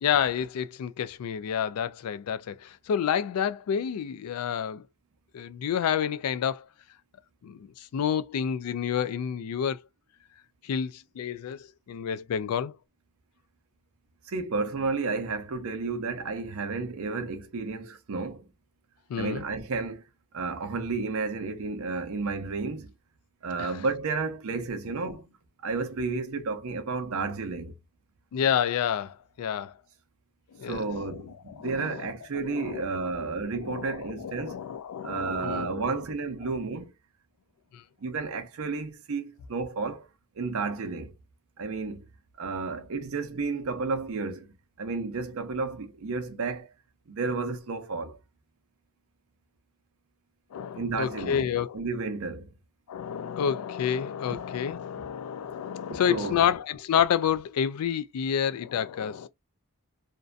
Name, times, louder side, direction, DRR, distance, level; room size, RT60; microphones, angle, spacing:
voice 1, 0.0-4.9 5.3-6.7 7.4-9.8 10.6-12.8 19.1-19.4 23.6-23.8 25.0-25.2 28.3-29.7 30.5-33.3 33.6-35.9 37.7-37.8 50.5-51.8 52.9-59.3, left 8 dB, 85° left, 0.3 m, -29 dB
voice 2, 14.3-18.5 19.2-20.0 20.3-22.9 23.4-25.3 25.6-27.7 30.6-34.6 35.0-36.9 38.0-40.1 40.4-41.1 41.6-42.1 42.4-46.7 47.1-48.2 50.7-51.4 51.7-52.5 56.1-56.5, right 4 dB, 65° right, 0.6 m, -32 dB
2.6 x 2.1 x 2.4 m
head